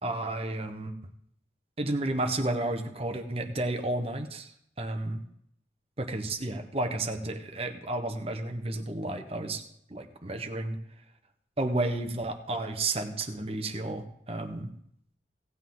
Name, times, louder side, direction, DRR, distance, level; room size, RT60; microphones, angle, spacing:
voice 1, 0.0-0.9 1.8-4.5 4.8-5.2 6.0-9.6 9.9-10.8 11.6-14.7, right 2 dB, 35° right, 5 dB, 1.1 m, -32 dB
17.0 x 8.3 x 3.9 m, 0.72 s
head